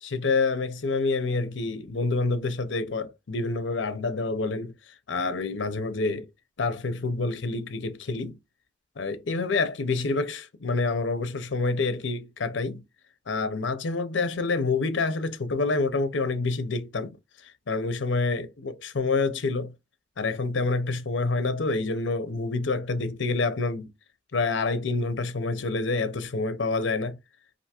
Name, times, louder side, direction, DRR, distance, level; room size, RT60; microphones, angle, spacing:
voice 1, 0.0-4.7 5.1-6.3 6.6-8.4 9.0-12.8 13.3-17.2 17.4-19.7 20.2-23.9 24.3-27.2, left 3 dB, 70° left, 0.6 m, -27 dB
3.3 x 2.6 x 2.9 m
head